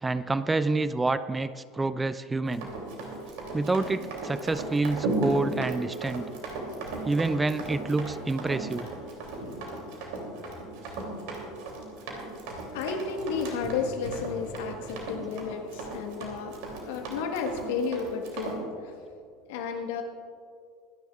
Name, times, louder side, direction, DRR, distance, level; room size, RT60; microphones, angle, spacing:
voice 1, 0.0-2.7 3.5-6.2 7.0-8.9, right 3 dB, 15° right, 13 dB, 0.5 m, -28 dB
Run, 2.5-18.6, right 2 dB, 65° right, 3.0 m, -36 dB
voice 2, 12.7-16.6 16.9-18.9 19.5-20.0, left 5 dB, 70° left, 4 dB, 1.5 m, -32 dB
24.5 x 10.5 x 2.5 m, 2.3 s
hypercardioid pair, 75°, 0 cm